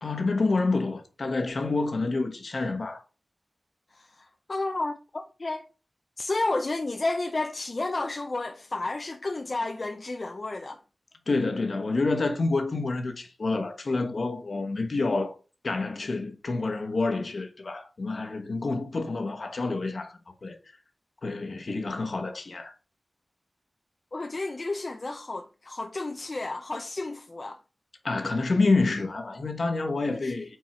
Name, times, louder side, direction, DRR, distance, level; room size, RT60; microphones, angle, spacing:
voice 1, 0.0-3.0 11.3-15.3 15.6-20.6 21.2-22.7 28.0-30.6, left 3 dB, 65° left, 1.1 m, -28 dB
voice 2, 3.9-5.7 6.2-10.8 24.1-27.6 30.1-30.3, left 2 dB, 45° left, 0.5 m, -32 dB
4.7 x 4.5 x 4.4 m
wide cardioid pair, 85°, 0 cm